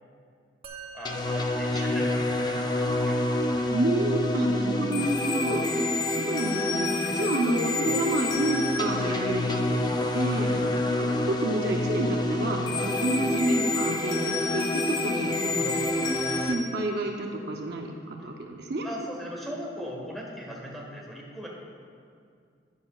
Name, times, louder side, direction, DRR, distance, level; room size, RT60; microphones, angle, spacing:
Musical instrument, 0.6-10.2, right 3 dB, 30° right, 0.8 m, -50 dB
voice 1, 0.9-3.2 3.5-3.7 7.0-7.2 18.8-21.5, equal, ahead, -3 dB, 1.6 m, -39 dB
sound 1, 1.0-16.5, left 2 dB, 25° left, 0.6 m, -27 dB
voice 2, 3.7-10.7 11.0-16.1 16.3-18.9, right 1 dB, 60° right, 1 dB, 0.8 m, -29 dB
12.0 x 9.9 x 2.4 m, 2.3 s
head